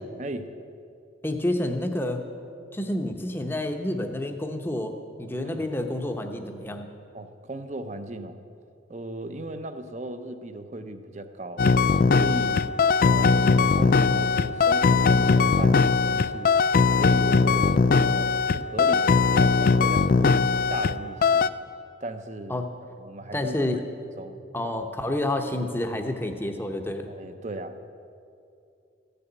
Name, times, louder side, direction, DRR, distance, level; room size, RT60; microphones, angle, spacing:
voice 1, 1.2-2.2 2.7-6.9 22.5-22.7 23.3-23.9 24.5-27.1, left 1 dB, 10° left, 5 dB, 0.8 m, -29 dB
voice 2, 7.1-8.4 8.9-11.7 12.1-12.7 13.0-16.5 17.0-20.4 20.7-21.5 22.0-22.6 23.0-23.8 24.2-24.4 27.1-27.8, right 2 dB, 35° right, 9 dB, 0.7 m, -37 dB
sound 1, 11.6-21.0 21.2-21.5, left 4 dB, 50° left, 0.3 m, -20 dB
14.5 x 6.8 x 9.2 m, 2.5 s
head